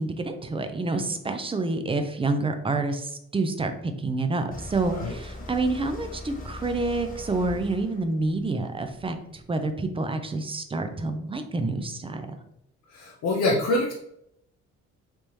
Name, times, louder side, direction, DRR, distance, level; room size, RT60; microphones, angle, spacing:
voice 1, 0.0-9.2 9.5-12.2, right 3 dB, 20° right, 7 dB, 0.4 m, -28 dB
sound 1, 4.5-9.5, left 1 dB, 30° left, 0.9 m, -40 dB
voice 2, 12.9-13.9, left 2 dB, 60° left, -2 dB, 0.7 m, -25 dB
3.4 x 2.7 x 3.1 m, 0.76 s
cardioid pair, 90°, 30 cm